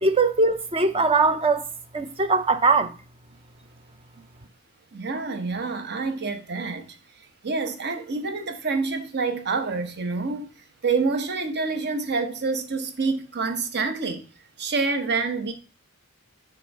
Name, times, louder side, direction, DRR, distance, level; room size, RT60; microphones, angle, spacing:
voice 1, 0.0-1.6 1.9-2.9, right 3 dB, 25° right, 0.6 m, -21 dB
voice 2, 4.9-7.0 7.4-10.5 10.8-14.2 14.6-15.5, right 4 dB, 50° right, 1.0 m, -27 dB
6.3 x 4.4 x 5.3 m
head